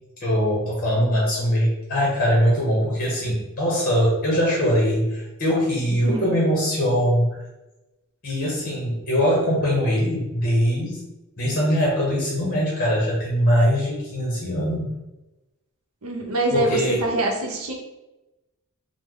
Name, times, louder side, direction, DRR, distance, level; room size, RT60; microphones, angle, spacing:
voice 1, 0.2-7.4 8.2-11.0 11.4-14.9 16.5-17.0, equal, 40° left, -4 dB, 0.8 m, -22 dB
voice 2, 16.0-17.7, right 1 dB, 70° right, 1 dB, 0.7 m, -24 dB
3.1 x 2.0 x 3.6 m, 1.0 s
head